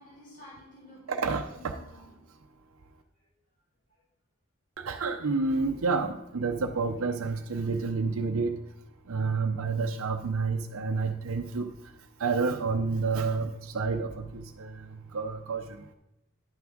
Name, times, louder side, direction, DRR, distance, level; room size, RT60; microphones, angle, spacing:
voice 1, 0.0-2.2 3.2-3.3, left 1 dB, 40° left, -6 dB, 3.1 m, -52 dB
voice 2, 1.1-1.7 4.8-8.5 9.1-11.7 12.2-15.8, right 4 dB, 90° right, 5 dB, 0.6 m, -29 dB
10.5 x 5.9 x 3.7 m, 0.92 s
head